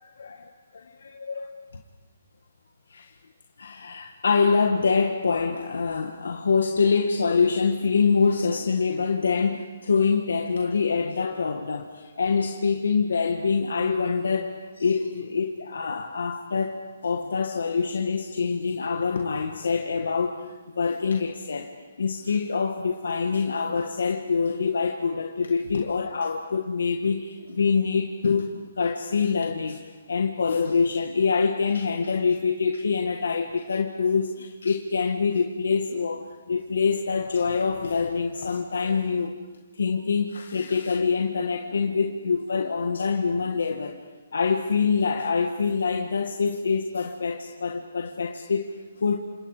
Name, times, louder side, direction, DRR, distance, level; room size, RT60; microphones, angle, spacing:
voice 1, 3.6-39.3 39.7-44.0 44.3-49.2, left 5 dB, 90° left, 4 dB, 1.7 m, -25 dB
29.5 x 27.5 x 5.0 m, 1.2 s
hypercardioid pair, 160°, 0 cm